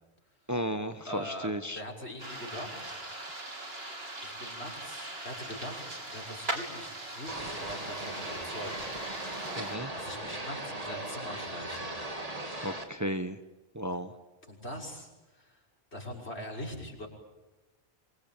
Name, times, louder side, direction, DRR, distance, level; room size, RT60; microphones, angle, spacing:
voice 1, 0.5-1.8 9.6-9.9 12.6-13.4 13.7-14.1, equal, 15° right, 8 dB, 1.1 m, -34 dB
voice 2, 1.1-3.0 4.2-8.7 9.4-11.9 13.9-14.0 14.5-15.6 15.9-17.1, equal, 75° left, 1 dB, 6.6 m, -42 dB
sound 1, 2.2-9.8, right 2 dB, 65° right, 3.8 m, -40 dB
sound 2, 7.3-12.8, right 1 dB, 35° right, 2.7 m, -38 dB
27.0 x 25.0 x 8.9 m, 1.0 s
omnidirectional pair, 1.1 m